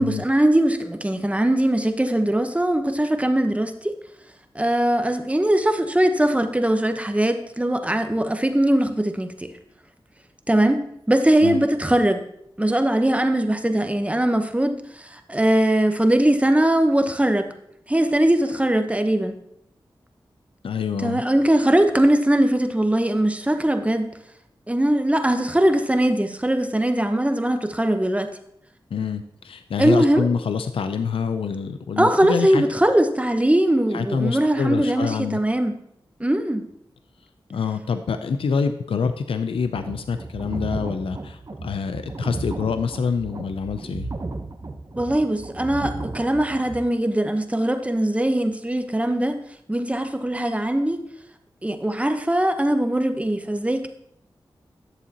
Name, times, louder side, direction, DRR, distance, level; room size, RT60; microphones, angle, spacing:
voice 1, 0.0-3.9 4.5-9.5 10.5-12.2 12.6-17.5 17.9-19.4 21.0-24.2 24.7-28.3 29.8-30.3 32.0-35.8 36.2-36.7 45.0-49.4 49.7-51.0 51.6-53.9, right 1 dB, 15° right, 7 dB, 0.9 m, -21 dB
voice 2, 20.6-21.2 28.9-32.6 33.9-35.4 37.5-44.1, left 5 dB, 85° left, 9 dB, 0.4 m, -26 dB
sound 1, 39.6-46.8, right 3 dB, 40° right, 0.9 m, -34 dB
11.0 x 6.9 x 2.9 m, 0.72 s
cardioid pair, 45°, 9 cm